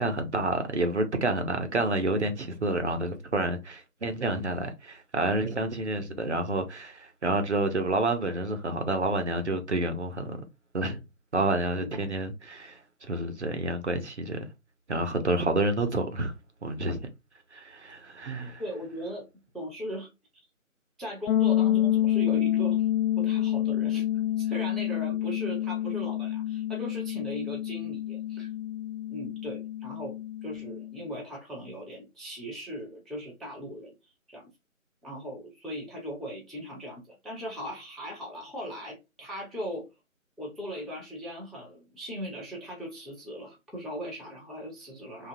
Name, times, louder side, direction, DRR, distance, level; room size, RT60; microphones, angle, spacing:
voice 1, 0.0-10.4 10.7-11.0 11.3-14.5 14.9-16.3 16.6-17.1 17.5-18.6, right 2 dB, 55° right, 0.6 m, -29 dB
voice 2, 18.6-19.2 19.5-20.1 21.0-22.9 23.2-24.1 24.4-28.5 29.1-33.9 34.3-34.5 35.0-39.9 40.4-45.3, equal, ahead, 0.4 m, -38 dB
sound 1, 21.3-31.0, left 12 dB, 70° left, 0.5 m, -28 dB
2.9 x 2.3 x 2.6 m
figure-of-eight pair, 170°, 42 cm